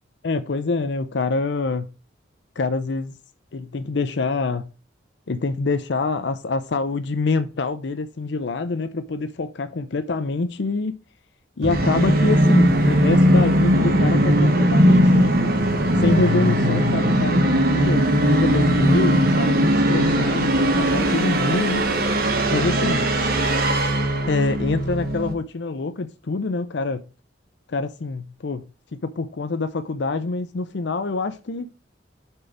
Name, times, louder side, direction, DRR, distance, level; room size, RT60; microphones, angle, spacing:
voice 1, 0.2-1.9 2.6-3.1 3.5-4.7 5.3-11.0 11.6-15.3 16.0-21.9 22.5-23.0 24.3-27.0 27.7-28.6 28.9-31.7, left 3 dB, 65° left, 0.6 m, -25 dB
Musical instrument, 11.6-25.3, equal, 55° right, 1.3 m, -19 dB
6.7 x 4.5 x 5.0 m
head